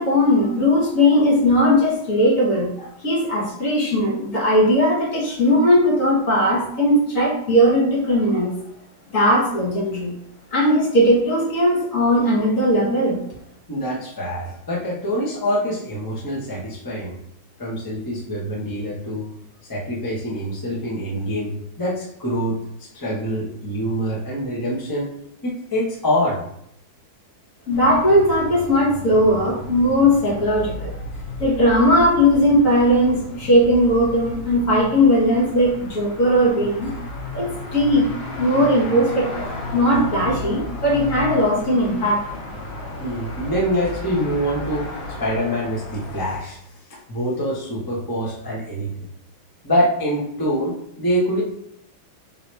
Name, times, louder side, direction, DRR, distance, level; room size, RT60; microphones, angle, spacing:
voice 1, 0.0-2.7 3.0-8.5 9.1-10.1 10.5-13.2 27.7-30.9 31.4-36.9 37.3-38.1 38.3-42.4, equal, 45° left, -4 dB, 1.4 m, -18 dB
voice 2, 13.7-17.1 17.6-19.3 19.7-25.1 25.4-26.4 43.0-44.9 45.2-46.6 47.1-48.9 49.6-51.4, equal, 20° left, -6 dB, 0.6 m, -25 dB
sound 1, 27.7-46.4, left 2 dB, 80° left, 1.7 m, -33 dB
3.9 x 2.8 x 4.6 m, 0.72 s
omnidirectional pair, 2.2 m